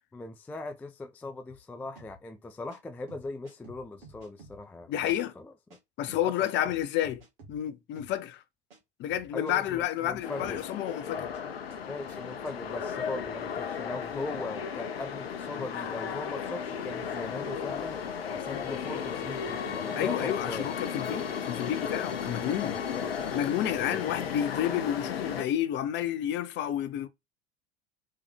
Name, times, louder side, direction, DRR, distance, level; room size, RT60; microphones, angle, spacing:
voice 1, 0.1-5.5 6.1-6.3 6.6-6.7 9.3-10.6 11.9-18.0 18.3-20.7 22.7-23.1 23.7-24.0, left 2 dB, 5° left, 0.3 m, -39 dB
sound 1, 1.5-1.6 2.0-2.2 2.7-2.8 3.1-4.6 5.0-5.2 5.7-5.8 6.1-7.6 8.0-8.2 8.7-8.8 9.1-10.7 11.0-11.4 11.7-11.8 12.1-12.2 12.5-12.6, right 2 dB, 65° right, 2.0 m, -51 dB
voice 2, 4.9-5.3 6.0-7.2 7.5-8.4 9.0-11.3 20.0-22.8 23.3-27.1, left 11 dB, 35° left, 0.7 m, -30 dB
sound 2, 10.2-25.4, left 7 dB, 70° left, 0.7 m, -35 dB
4.3 x 3.4 x 3.3 m
figure-of-eight pair, 75°, 31 cm